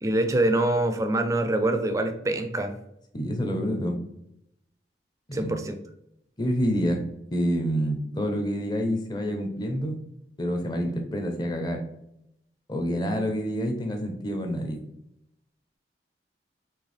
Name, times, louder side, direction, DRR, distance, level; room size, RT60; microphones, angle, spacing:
voice 1, 0.0-2.7 5.3-5.7, right 1 dB, 20° right, 8 dB, 0.4 m, -25 dB
voice 2, 3.1-4.0 5.3-5.6 6.4-7.0 7.3-10.0 10.4-11.8 12.7-14.8, equal, 25° left, 3 dB, 0.6 m, -27 dB
4.5 x 3.3 x 3.3 m, 0.80 s
head